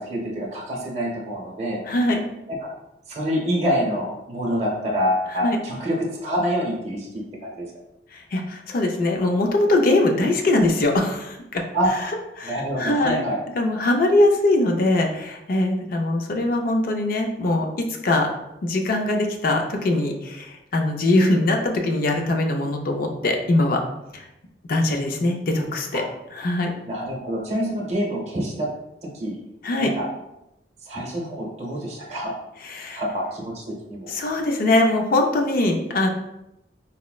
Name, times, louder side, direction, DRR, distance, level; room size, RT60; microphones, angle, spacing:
voice 1, 0.0-1.8 3.1-7.7 11.7-11.9 12.4-13.4 25.9-26.0 26.8-28.7 29.1-29.4 29.8-30.0 30.8-32.3 32.9-33.6 33.9-34.1, equal, 35° right, -3 dB, 0.7 m, -26 dB
voice 2, 1.9-2.2 5.3-5.6 8.1-11.6 11.9-12.1 12.4-13.3 13.6-18.3 18.6-23.8 24.1-24.3 24.7-26.0 26.3-26.8 29.6-29.9 32.6-33.0 34.1-36.1, left 2 dB, 50° left, 3 dB, 0.4 m, -22 dB
4.1 x 2.0 x 2.3 m, 0.89 s
head